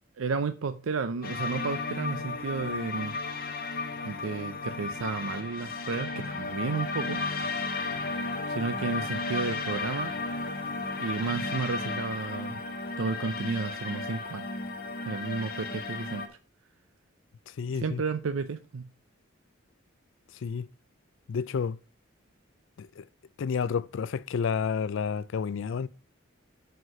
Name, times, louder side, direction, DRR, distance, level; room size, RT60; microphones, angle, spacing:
voice 1, 0.2-3.1 4.0-7.2 8.5-10.1 11.0-12.6 13.0-14.4 15.0-16.4 17.7-18.9, right 4 dB, 80° right, 0.5 m, -32 dB
sound 1, 1.2-16.3, left 3 dB, 50° left, 1.3 m, -34 dB
voice 2, 17.6-18.0 20.4-20.7 21.3-21.8 22.8-23.0 23.4-25.9, left 6 dB, 65° left, 0.4 m, -30 dB
5.7 x 5.4 x 5.7 m
head